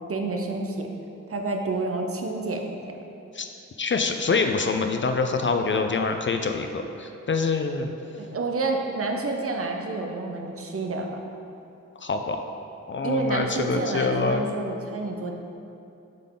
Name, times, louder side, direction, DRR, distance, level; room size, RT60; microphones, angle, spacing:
voice 1, 0.1-0.9 1.3-2.8 8.2-11.2 13.0-15.3, right 3 dB, 45° right, 2 dB, 0.7 m, -29 dB
voice 2, 3.8-7.9 12.0-12.4 12.9-14.5, left 4 dB, 40° left, 5 dB, 0.4 m, -25 dB
7.5 x 3.6 x 3.9 m, 2.7 s
cardioid pair, 65°, 31 cm